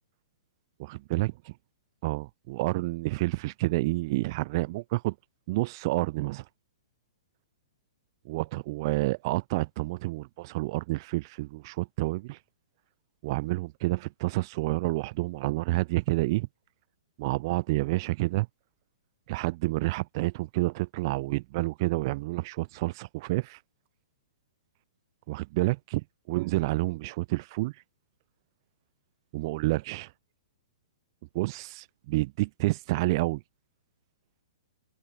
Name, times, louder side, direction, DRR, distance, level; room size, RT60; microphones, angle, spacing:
voice 1, 0.8-1.3 2.0-5.1 5.5-6.4 8.3-12.4 13.2-16.5 17.2-18.5 19.3-23.6 25.3-27.7 29.3-30.1 31.3-33.4, right 21 dB, 45° right, 7.3 m, -29 dB
open air
hypercardioid pair, 135°, 3 cm